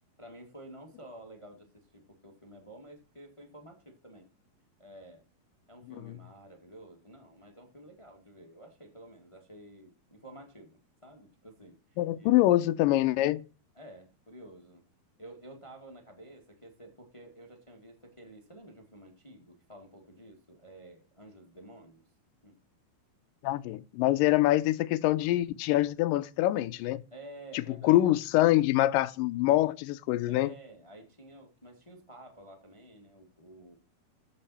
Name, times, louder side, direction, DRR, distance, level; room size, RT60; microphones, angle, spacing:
voice 1, 0.2-4.3 4.8-5.2 5.7-12.4 13.7-14.8 15.2-22.0 22.4-22.6 27.1-28.2 30.1-33.7, right 1 dB, 25° left, 0.6 m, -51 dB
voice 2, 12.0-13.4 23.4-27.0 27.8-30.5, left 15 dB, 80° left, 2.1 m, -25 dB
14.5 x 5.5 x 4.3 m
omnidirectional pair, 4.4 m